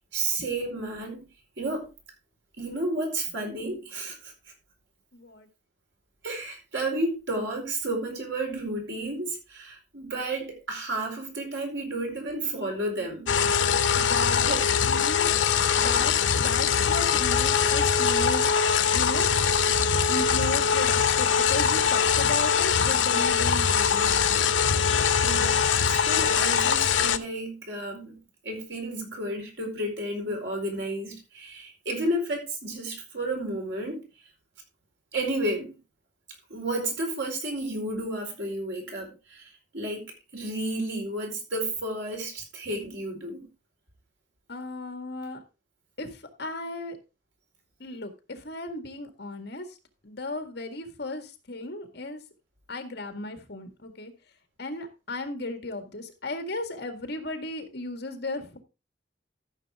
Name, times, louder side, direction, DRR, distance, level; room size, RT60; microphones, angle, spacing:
voice 1, 0.1-1.3 1.6-1.9 2.6-4.3 6.2-13.3 13.9-14.0 14.5-14.6 25.2-34.0 35.1-35.8 36.5-40.0 40.3-43.5, right 1 dB, 70° right, 1 dB, 4.5 m, -32 dB
voice 2, 5.1-5.5 14.0-18.5 18.9-19.3 20.0-24.2 44.5-45.4 46.0-47.0 47.8-49.8 50.0-52.2 52.7-54.1 54.6-58.6, left 2 dB, 60° left, 7 dB, 1.8 m, -35 dB
sound 1, 13.3-27.2, left 7 dB, 90° left, 0.7 m, -22 dB
14.0 x 6.6 x 3.6 m, 0.29 s
head